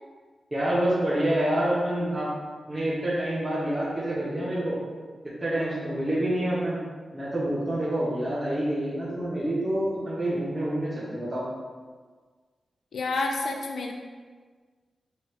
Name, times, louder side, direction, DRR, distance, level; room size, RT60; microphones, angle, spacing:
voice 1, 0.5-2.3 2.7-4.8 5.2-6.8 7.1-11.4, right 1 dB, 10° right, -10 dB, 0.8 m, -27 dB
voice 2, 12.9-13.9, left 3 dB, 75° left, 2 dB, 0.4 m, -29 dB
4.3 x 3.1 x 3.2 m, 1.5 s
wide cardioid pair, 135°, 0 cm